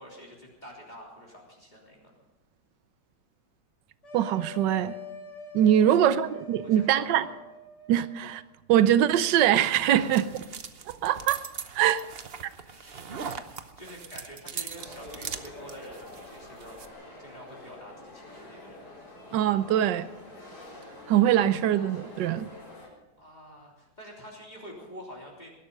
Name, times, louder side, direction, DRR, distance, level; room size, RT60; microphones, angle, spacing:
voice 1, 0.0-2.0 5.8-6.2 6.6-7.4 9.9-10.3 12.6-13.4 13.8-18.8 23.2-25.5, equal, 25° left, 3.5 m, -47 dB
sound 1, 4.0-8.4, left 2 dB, 45° left, 2.5 m, -44 dB
voice 2, 4.1-4.9 5.5-7.2 7.9-8.4 8.7-10.2 10.9-11.4 11.7-12.0 19.3-20.1 21.1-22.5, right 11 dB, 85° right, 1.4 m, -23 dB
sound 2, 9.4-16.9, right 6 dB, 45° right, 0.9 m, -41 dB
sound 3, 14.7-22.9, left 2 dB, 70° left, 4.9 m, -46 dB
19.5 x 12.0 x 5.4 m
omnidirectional pair, 1.9 m